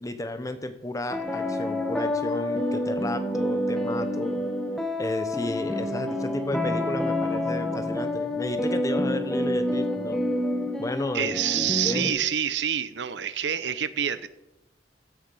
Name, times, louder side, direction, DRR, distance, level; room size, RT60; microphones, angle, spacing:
voice 1, 0.0-4.4 5.0-10.2 10.8-12.1, left 1 dB, 20° left, 9 dB, 1.0 m, -33 dB
sound 1, 1.1-12.1, left 1 dB, 5° left, 1.4 m, -28 dB
voice 2, 11.1-14.3, right 9 dB, 75° right, 14 dB, 0.7 m, -27 dB
15.0 x 7.3 x 5.4 m, 0.92 s
head